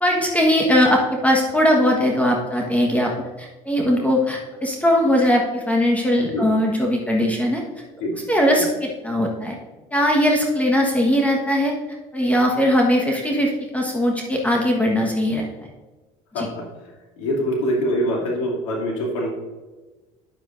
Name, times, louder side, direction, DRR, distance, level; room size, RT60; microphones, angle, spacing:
voice 1, 0.0-3.1 3.4-7.6 8.3-8.7 9.0-9.6 9.9-11.7 12.1-15.5 16.4-16.5, equal, 10° left, 0 dB, 1.3 m, -19 dB
voice 2, 16.3-16.7 17.2-19.3, equal, 85° left, -3 dB, 2.7 m, -24 dB
9.4 x 7.6 x 2.6 m, 1.2 s
hypercardioid pair, 75°, 17 cm